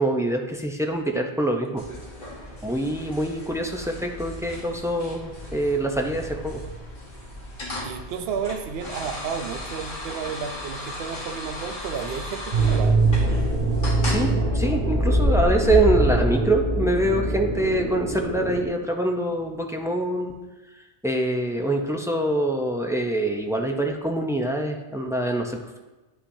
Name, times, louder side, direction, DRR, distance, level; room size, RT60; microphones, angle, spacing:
voice 1, 0.0-1.8 2.6-6.6 14.1-20.3 21.0-25.8, right 1 dB, 5° right, 2 dB, 0.3 m, -25 dB
sound 1, 1.8-14.3, left 1 dB, 50° left, 1.5 m, -36 dB
voice 2, 7.8-13.0, right 6 dB, 70° right, 7 dB, 0.8 m, -32 dB
sound 2, 12.5-18.7, right 2 dB, 50° right, 1.7 m, -22 dB
9.9 x 5.7 x 2.7 m, 1.1 s
omnidirectional pair, 1.1 m